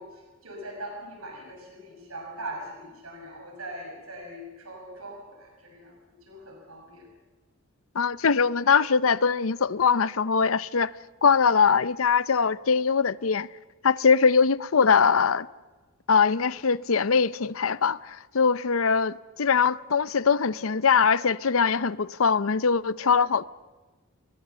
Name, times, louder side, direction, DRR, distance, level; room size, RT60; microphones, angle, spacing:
voice 1, 0.0-7.1 23.0-23.1, right 1 dB, 85° right, 6.6 m, -41 dB
voice 2, 7.9-10.9 11.2-13.5 13.8-15.5 16.1-23.4, left 5 dB, 70° left, 0.7 m, -22 dB
30.0 x 21.5 x 6.9 m
head